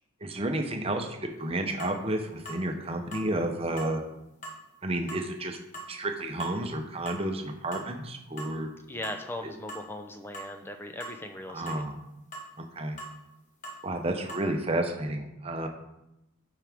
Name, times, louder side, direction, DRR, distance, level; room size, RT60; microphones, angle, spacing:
voice 1, 0.2-4.0 4.8-5.6 5.9-8.7 11.5-11.9 12.8-13.0 13.8-15.7, right 1 dB, 25° right, 4 dB, 0.8 m, -31 dB
sound 1, 1.3-1.4 1.8-2.0 2.5-2.6 3.1-3.3 3.8-4.0 4.4-4.6 5.1-5.3 5.7-5.9 6.4-6.6 7.1-7.2 7.7-7.9 8.4-8.6 9.0-9.2 9.7-9.9 10.3-10.5 11.0-11.2 11.7-11.8 12.3-12.5 13.0-13.1 13.6-13.8 14.3-14.5, right 1 dB, 35° left, 1.5 m, -41 dB
voice 2, 8.9-11.8, left 1 dB, 10° left, 5 dB, 0.6 m, -39 dB
12.0 x 4.8 x 3.6 m, 0.88 s
head